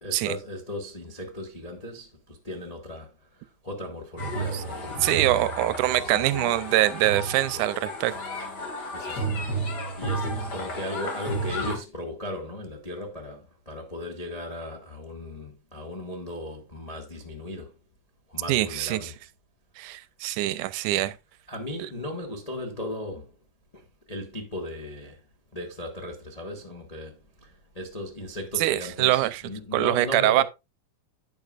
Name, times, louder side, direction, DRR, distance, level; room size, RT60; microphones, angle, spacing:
voice 1, 0.0-5.2 5.9-6.6 8.9-9.5 9.9-17.7 18.3-19.1 21.5-23.3 23.7-25.2 25.5-30.4, left 1 dB, 60° left, 0.4 m, -37 dB
sound 1, 4.2-11.8, right 1 dB, 35° left, 2.1 m, -32 dB
voice 2, 5.0-8.2 18.5-19.1 19.8-21.2 21.8-21.9 28.6-29.4 29.7-30.4, right 15 dB, 80° right, 2.0 m, -24 dB
10.5 x 8.6 x 2.4 m
omnidirectional pair, 3.7 m